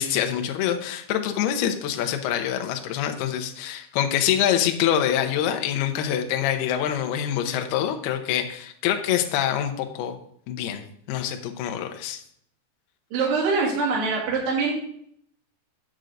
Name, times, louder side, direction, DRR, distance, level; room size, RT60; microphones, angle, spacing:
voice 1, 0.0-10.1 10.5-12.2, left 10 dB, 85° left, 5 dB, 2.2 m, -25 dB
voice 2, 13.1-14.7, right 4 dB, 60° right, -7 dB, 4.4 m, -24 dB
8.9 x 7.8 x 3.9 m, 0.66 s
omnidirectional pair, 5.9 m